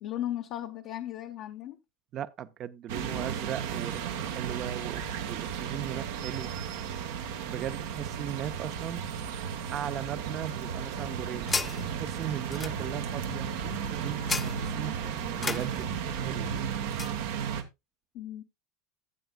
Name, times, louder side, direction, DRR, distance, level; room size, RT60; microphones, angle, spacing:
voice 1, 0.0-1.8 18.1-18.4, left 12 dB, 60° left, 0.8 m, -36 dB
voice 2, 2.1-6.8 7.4-9.1 9.7-11.5 11.9-14.9 15.4-16.5, right 10 dB, 45° right, 0.6 m, -38 dB
sound 1, 2.9-17.6, right 8 dB, 75° right, 1.1 m, -34 dB
sound 2, 10.6-17.2, left 4 dB, 20° left, 0.4 m, -38 dB
14.0 x 8.0 x 2.2 m
hypercardioid pair, 90°, 0 cm